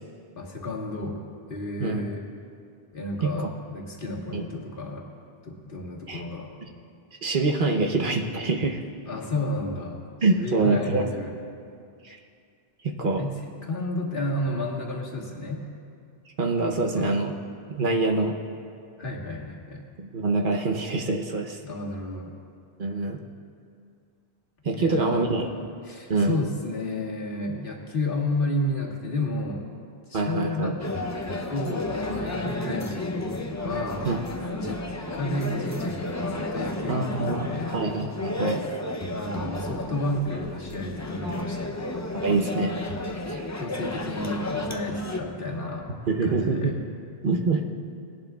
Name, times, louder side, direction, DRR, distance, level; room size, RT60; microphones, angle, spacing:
voice 1, 0.4-1.2 1.5-2.3 2.9-5.1 5.4-6.5 9.1-10.0 10.4-11.3 13.2-13.4 13.6-15.7 16.9-17.2 19.0-19.8 21.6-22.3 24.7-29.7 30.1-30.8 31.5-34.1 34.4-34.8 35.1-37.8 39.1-41.8 43.2-45.9 46.2-46.8, left 1 dB, 60° left, -2 dB, 1.6 m, -31 dB
voice 2, 7.2-8.8 10.2-11.1 12.0-12.2 12.8-13.2 16.4-17.3 17.7-18.4 20.0-21.6 22.8-23.2 24.6-25.5 26.1-26.4 30.1-30.8 34.0-34.2 36.9-38.6 42.2-42.7 43.3-43.4 46.1-46.8 47.2-47.6, right 3 dB, 55° right, 2 dB, 0.9 m, -25 dB
sound 1, 30.8-45.2, left 2 dB, 20° left, 0.5 m, -32 dB
19.0 x 11.0 x 2.3 m, 2.4 s
omnidirectional pair, 1.0 m